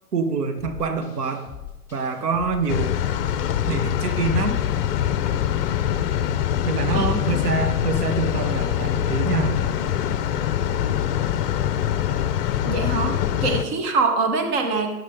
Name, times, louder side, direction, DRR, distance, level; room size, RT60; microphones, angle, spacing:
voice 1, 0.1-1.5 1.9-3.0 3.7-4.6 6.6-9.6, right 4 dB, 85° right, 6 dB, 1.6 m, -25 dB
sound 1, 0.6-10.4, left 9 dB, 5° left, 1.8 m, -42 dB
sound 2, 2.7-13.6, left 10 dB, 40° left, 0.7 m, -24 dB
voice 2, 12.7-15.0, right 4 dB, 30° right, 4 dB, 1.5 m, -24 dB
14.0 x 9.4 x 3.8 m, 1.0 s
hypercardioid pair, 135°, 46 cm